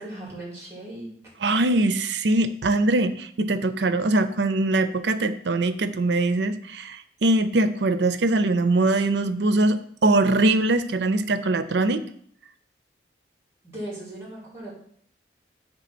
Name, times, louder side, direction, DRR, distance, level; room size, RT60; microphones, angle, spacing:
voice 1, 0.0-1.3 13.6-14.7, right 1 dB, 15° right, -3 dB, 2.7 m, -38 dB
voice 2, 1.4-12.0, right 2 dB, 75° right, 11 dB, 0.5 m, -22 dB
8.1 x 3.3 x 6.0 m, 0.63 s
head